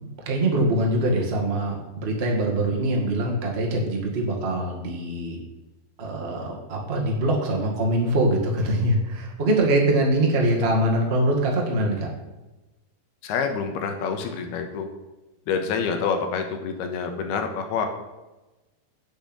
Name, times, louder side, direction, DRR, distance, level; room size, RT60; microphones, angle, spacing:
voice 1, 0.2-5.4 6.0-12.1, right 1 dB, 60° right, 0 dB, 0.6 m, -23 dB
voice 2, 13.2-14.9 15.5-17.9, left 6 dB, 85° left, 5 dB, 3.1 m, -27 dB
9.0 x 7.9 x 6.2 m, 1.1 s
omnidirectional pair, 4.5 m